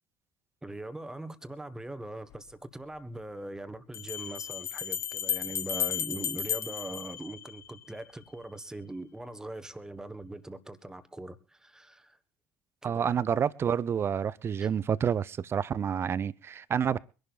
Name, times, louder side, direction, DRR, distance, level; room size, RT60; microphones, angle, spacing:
voice 1, 0.6-12.2 12.8-13.2 14.6-14.7, right 1 dB, 10° right, 1.5 m, -41 dB
Bell, 2.3-2.4 3.9-7.9, left 9 dB, 45° left, 1.0 m, -34 dB
voice 2, 12.8-17.0, right 8 dB, 35° right, 0.7 m, -28 dB
24.0 x 11.5 x 2.5 m
figure-of-eight pair, 60°, 7 cm